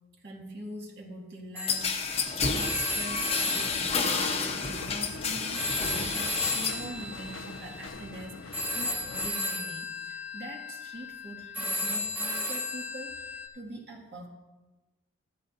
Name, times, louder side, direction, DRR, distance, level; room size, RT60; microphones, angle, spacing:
voice 1, 0.2-14.3, right 1 dB, 55° right, -1 dB, 2.1 m, -43 dB
Telephone, 1.6-5.2 5.5-13.5, left 1 dB, 10° right, 1.2 m, -35 dB
sound 1, 1.7-6.9 7.2-7.9, left 4 dB, 30° left, 0.9 m, -30 dB
sound 2, 3.5-9.3, left 4 dB, 75° left, 0.5 m, -43 dB
15.0 x 12.5 x 2.7 m, 1.1 s
head